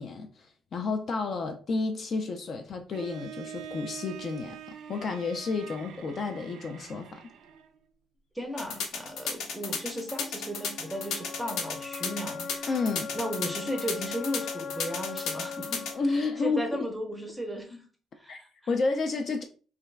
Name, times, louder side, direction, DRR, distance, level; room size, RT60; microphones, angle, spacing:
voice 1, 0.0-4.6 4.9-7.2 12.7-13.1 15.9-16.9 18.3-18.4 18.7-19.4, left 3 dB, 35° left, 0.3 m, -31 dB
Bowed string instrument, 2.9-7.8, right 8 dB, 75° right, 0.4 m, -45 dB
voice 2, 8.3-12.8 13.1-17.9 18.2-18.5, equal, 5° right, 0.6 m, -36 dB
sound 1, 8.6-15.9, left 5 dB, 90° left, 0.8 m, -33 dB
sound 2, 9.4-17.4, left 5 dB, 55° left, 0.7 m, -41 dB
3.2 x 2.3 x 3.2 m
cardioid pair, 180°, 0 cm